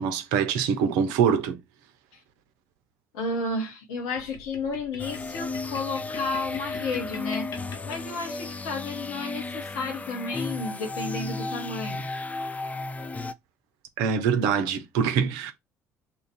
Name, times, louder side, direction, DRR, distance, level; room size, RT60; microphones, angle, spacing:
voice 1, 0.0-1.6 14.0-15.5, right 7 dB, 70° right, 0.6 m, -24 dB
voice 2, 3.1-12.1, left 3 dB, 70° left, 1.2 m, -32 dB
sound 1, 4.2-8.6, left 6 dB, 55° left, 0.8 m, -44 dB
sound 2, 5.0-13.3, left 3 dB, 20° left, 0.4 m, -34 dB
2.9 x 2.5 x 4.2 m
figure-of-eight pair, 50°, 8 cm